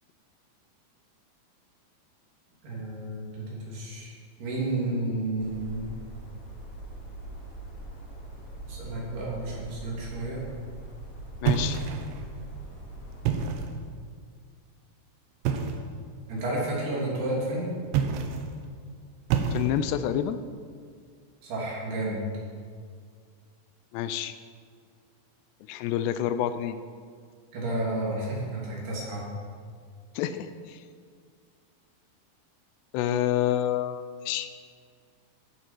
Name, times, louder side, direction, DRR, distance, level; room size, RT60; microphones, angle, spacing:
voice 1, 2.6-4.1 4.4-5.9 8.7-10.4 16.3-17.7 21.4-22.2 27.5-29.3, right 2 dB, 70° right, -4 dB, 5.0 m, -31 dB
sound 1, 5.4-13.5, right 1 dB, 35° left, 3.8 m, -42 dB
voice 2, 11.4-11.8 19.5-20.4 23.9-24.4 25.7-26.8 30.2-30.8 32.9-34.6, left 11 dB, 85° left, 11 dB, 2.7 m, -28 dB
sound 2, 11.4-12.3 13.1-13.8 15.4-15.9 17.9-18.5 19.3-20.0, right 7 dB, 90° right, 3.2 m, -28 dB
15.0 x 11.5 x 4.6 m, 2.1 s
omnidirectional pair, 4.9 m